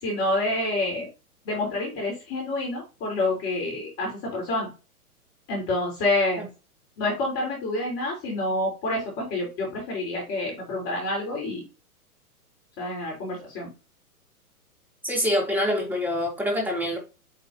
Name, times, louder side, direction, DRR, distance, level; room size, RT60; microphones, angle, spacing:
voice 1, 0.0-1.1 1.5-4.7 5.5-6.5 7.0-11.6 12.8-13.7, left 2 dB, 30° left, 3.6 m, -28 dB
voice 2, 15.0-17.0, left 1 dB, 5° right, 2.8 m, -25 dB
8.8 x 4.6 x 2.7 m
figure-of-eight pair, 115°, 45 cm